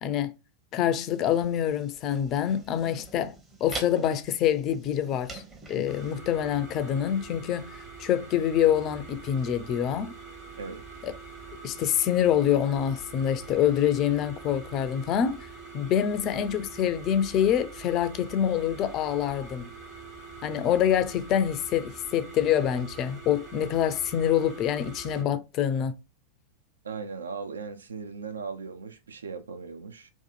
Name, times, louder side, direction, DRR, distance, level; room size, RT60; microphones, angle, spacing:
voice 1, 0.0-0.3 0.7-3.3 3.6-5.4 5.7-7.7 8.0-10.1 11.0-11.1 11.6-15.4 15.7-19.7 20.4-25.9, left 9 dB, 35° left, 0.3 m, -26 dB
sound 1, 1.1-6.1, right 3 dB, 20° right, 0.7 m, -44 dB
sound 2, 5.9-25.2, right 4 dB, 40° right, 1.1 m, -44 dB
voice 2, 26.8-30.1, right 5 dB, 70° right, 0.3 m, -38 dB
2.6 x 2.4 x 2.3 m
figure-of-eight pair, 90°, 0 cm